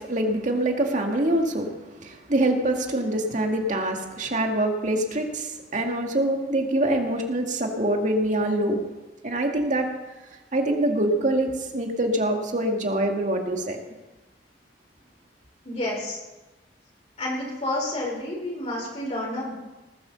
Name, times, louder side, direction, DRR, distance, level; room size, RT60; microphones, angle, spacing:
voice 1, 0.0-8.8 9.2-9.9 10.5-13.8, right 1 dB, 45° right, 3 dB, 2.1 m, -25 dB
voice 2, 15.6-16.2 17.2-19.5, left 1 dB, 35° left, -3 dB, 4.4 m, -30 dB
19.5 x 8.1 x 6.9 m, 1.1 s
head